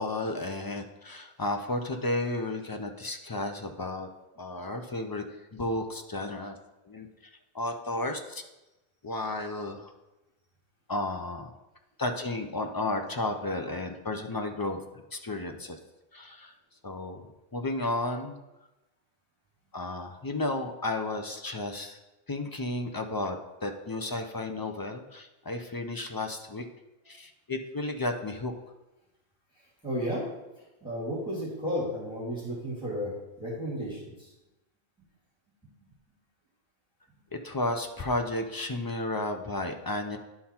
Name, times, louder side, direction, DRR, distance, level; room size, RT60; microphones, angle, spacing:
voice 1, 0.0-4.1 4.4-6.6 6.8-7.1 7.5-8.4 9.0-9.9 10.9-11.5 12.0-15.8 16.1-16.5 16.8-18.4 19.7-22.0 22.3-26.6 27.1-28.5 37.3-40.2, left 2 dB, 35° left, 5 dB, 0.3 m, -33 dB
voice 2, 29.8-30.3 30.8-33.1 33.4-34.1, equal, 5° right, -7 dB, 2.1 m, -32 dB
11.0 x 3.8 x 4.3 m, 1.0 s
omnidirectional pair, 1.1 m